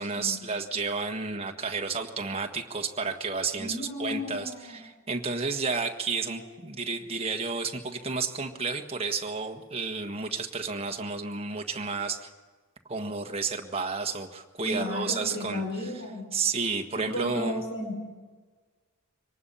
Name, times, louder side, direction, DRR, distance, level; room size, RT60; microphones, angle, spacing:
voice 1, 0.0-12.3 12.9-15.9 16.3-17.6, right 4 dB, 25° right, 4 dB, 1.6 m, -31 dB
voice 2, 3.6-4.8 6.4-6.5 14.6-16.3 16.9-18.0, left 1 dB, 60° left, 2 dB, 5.2 m, -34 dB
24.5 x 19.0 x 5.7 m, 1.4 s
head